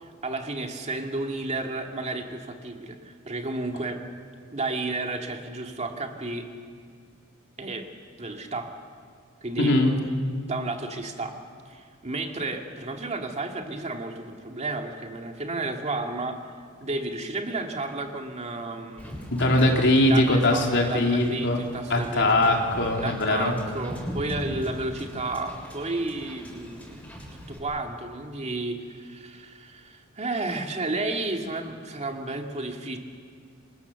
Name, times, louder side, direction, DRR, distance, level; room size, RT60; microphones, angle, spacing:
voice 1, 0.0-4.0 4.5-6.5 7.6-7.9 8.2-8.7 9.4-9.7 10.5-11.4 11.7-16.5 16.8-19.2 20.1-22.5 23.0-27.0 27.3-33.0, right 2 dB, 30° right, 3 dB, 2.2 m, -32 dB
voice 2, 9.6-9.9 19.3-21.6 21.9-23.5, left 1 dB, 60° left, 1 dB, 3.7 m, -21 dB
Wind / Boat Water vehicle, 19.0-27.6, equal, 5° left, 6.8 m, -40 dB
28.5 x 25.5 x 7.1 m, 2.1 s
head